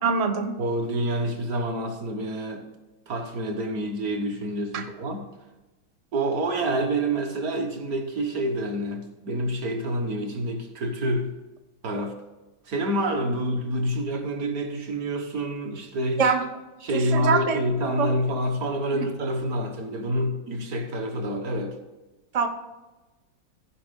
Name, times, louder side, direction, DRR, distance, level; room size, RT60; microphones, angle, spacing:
voice 1, 0.0-0.6 4.7-4.8 16.2-16.4 16.9-17.6 18.0-18.1 18.9-19.0 22.3-22.5, right 5 dB, 75° right, 5 dB, 0.3 m, -23 dB
voice 2, 0.6-2.6 3.1-5.2 6.1-11.3 11.8-12.1 12.7-16.3 16.8-21.7, right 1 dB, 50° right, 4 dB, 1.5 m, -27 dB
15.0 x 5.1 x 5.2 m, 1.1 s
omnidirectional pair, 2.1 m